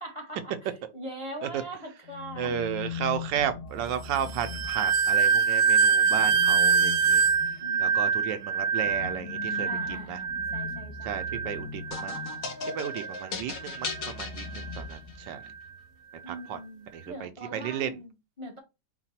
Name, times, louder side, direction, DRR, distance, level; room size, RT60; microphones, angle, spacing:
voice 1, 0.0-2.5 7.6-8.3 9.7-11.8 16.2-18.6, right 1 dB, 25° left, 0.7 m, -42 dB
sound 1, 2.0-5.4 6.0-12.6 13.6-15.6, left 6 dB, 80° left, 1.6 m, -41 dB
voice 2, 2.4-7.2 7.8-9.7 10.1-10.2 11.0-12.3 12.7-15.4 16.3-16.6 16.9-17.9, right 9 dB, 85° right, 1.3 m, -33 dB
sound 2, 4.3-13.3 13.6-14.0 14.5-14.8, right 6 dB, 65° right, 1.1 m, -25 dB
sound 3, 11.9-15.3, left 4 dB, 55° left, 1.3 m, -37 dB
4.9 x 2.2 x 4.1 m
omnidirectional pair, 2.0 m